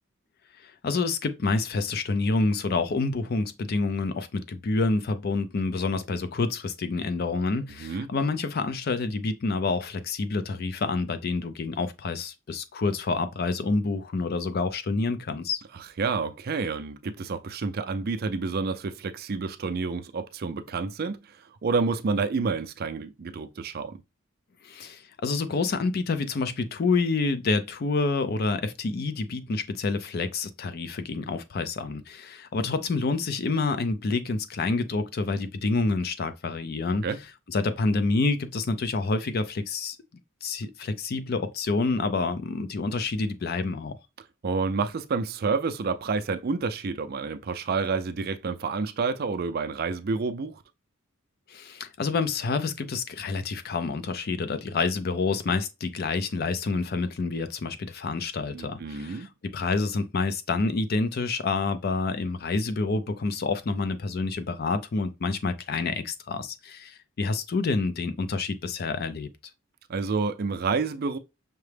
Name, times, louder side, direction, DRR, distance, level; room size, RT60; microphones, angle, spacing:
voice 1, 0.6-15.6 24.6-37.1 37.5-40.0 40.4-44.0 51.5-69.3, left 3 dB, 50° left, 0.4 m, -28 dB
voice 2, 15.7-24.0 37.0-37.2 44.4-50.6 58.5-59.3 69.9-71.2, right 4 dB, 50° right, 0.4 m, -29 dB
5.8 x 2.0 x 3.3 m
head